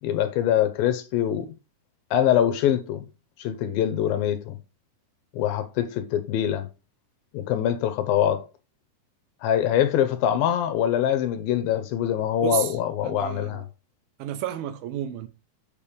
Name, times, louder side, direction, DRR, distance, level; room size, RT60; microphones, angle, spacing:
voice 1, 0.0-1.5 2.1-3.1 3.4-4.6 5.3-6.7 7.3-8.4 9.4-13.6, left 10 dB, 80° left, 2.3 m, -24 dB
voice 2, 12.4-12.8 13.0-13.6 14.2-15.3, right 10 dB, 80° right, 2.4 m, -31 dB
7.2 x 6.8 x 3.3 m
omnidirectional pair, 4.6 m